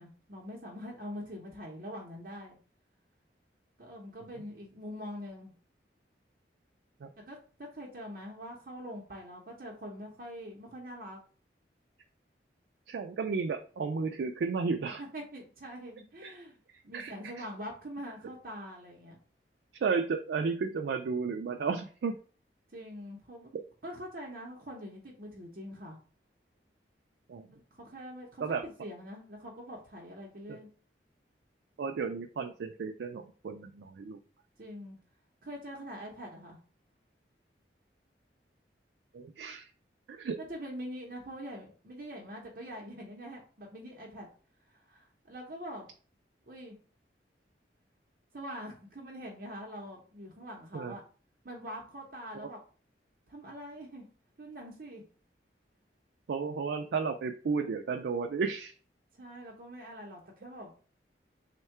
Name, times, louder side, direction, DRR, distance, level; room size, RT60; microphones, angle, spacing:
voice 1, 0.0-2.6 3.8-5.5 7.3-11.2 15.0-16.6 16.8-19.2 22.7-23.5 23.8-26.0 27.5-30.7 34.6-35.0 35.4-36.6 40.4-44.3 44.7-45.9 46.5-46.8 48.3-51.0 51.4-52.6 53.3-54.1 54.4-55.0 59.2-60.7, equal, 50° right, -2 dB, 0.7 m, -44 dB
voice 2, 12.9-15.0 16.2-16.3 16.9-17.4 19.8-22.2 23.5-23.6 27.3-27.5 28.4-28.6 30.5-30.6 31.8-34.2 39.1-39.7 40.1-40.4 50.7-51.0 52.3-52.5 56.3-58.8, right 5 dB, 75° right, 4 dB, 0.3 m, -33 dB
3.5 x 2.2 x 4.4 m, 0.40 s
head